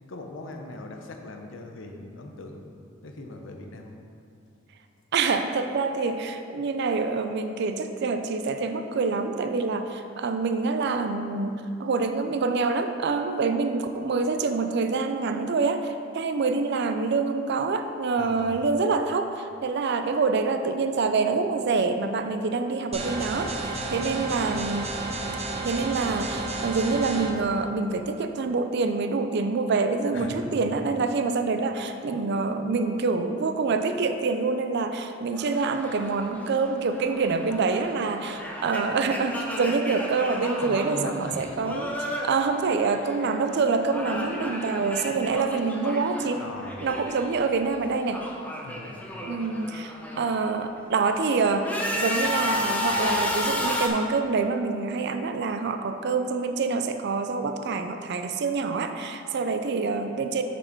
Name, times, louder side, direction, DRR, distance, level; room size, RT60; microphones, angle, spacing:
voice 1, 0.1-2.7 3.0-3.9 18.2-18.6 23.8-24.1 30.1-30.6 40.6-41.4 46.4-46.8 48.6-49.0, left 2 dB, 70° left, 3 dB, 0.7 m, -40 dB
voice 2, 5.1-25.0 25.6-41.9 42.2-46.4 46.8-48.2 49.2-60.4, right 4 dB, 60° right, 7 dB, 0.4 m, -26 dB
sound 1, 22.9-27.3, right 2 dB, 35° right, 0.7 m, -32 dB
sound 2, 35.4-43.4 43.6-47.4 47.7-50.4 50.9-53.9, left 1 dB, 10° left, 0.8 m, -33 dB
6.5 x 6.3 x 4.5 m, 2.6 s
head